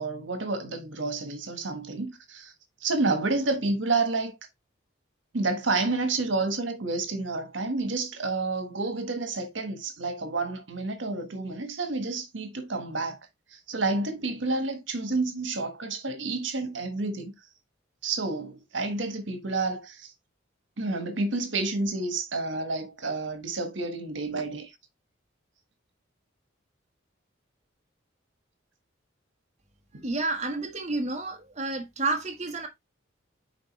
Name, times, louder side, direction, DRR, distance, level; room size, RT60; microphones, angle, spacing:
voice 1, 0.0-2.5 2.8-4.3 5.3-13.2 13.5-17.3 18.0-20.1 20.8-24.7 29.9-30.0, right 3 dB, 70° right, 1.5 m, -29 dB
voice 2, 30.0-32.7, right 3 dB, 35° right, 1.4 m, -30 dB
10.0 x 3.8 x 3.2 m
head